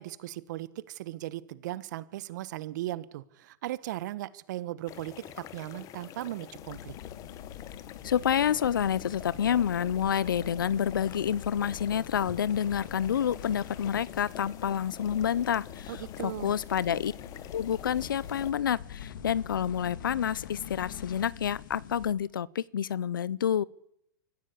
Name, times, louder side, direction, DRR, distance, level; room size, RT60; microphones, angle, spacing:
voice 1, 0.0-6.9 15.9-16.5, right 15 dB, 60° right, 1.4 m, -37 dB
sound 1, 4.9-18.5, left 12 dB, 30° left, 1.2 m, -47 dB
sound 2, 6.5-22.1, left 9 dB, 70° left, 2.2 m, -44 dB
voice 2, 8.0-15.9 16.2-17.1 17.5-23.6, left 9 dB, 90° left, 0.7 m, -28 dB
24.5 x 15.0 x 8.5 m
hypercardioid pair, 130°, 11 cm